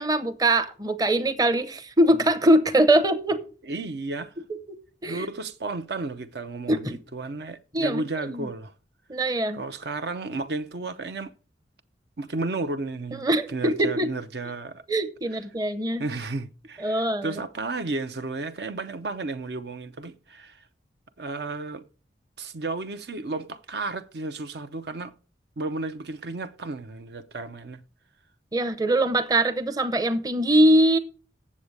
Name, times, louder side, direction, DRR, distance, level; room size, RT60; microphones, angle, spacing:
voice 1, 0.0-3.4 5.0-5.3 6.7-7.0 7.7-8.5 9.1-9.6 13.2-14.1 14.9-16.0 16.8-17.4 28.5-31.0, right 1 dB, 20° right, 0.7 m, -22 dB
voice 2, 3.6-4.3 5.1-8.7 9.5-11.3 12.2-14.8 15.3-15.4 16.0-20.7 21.2-21.9 22.4-25.1 25.6-27.8, right 3 dB, 60° right, 0.6 m, -33 dB
8.4 x 7.3 x 6.4 m
head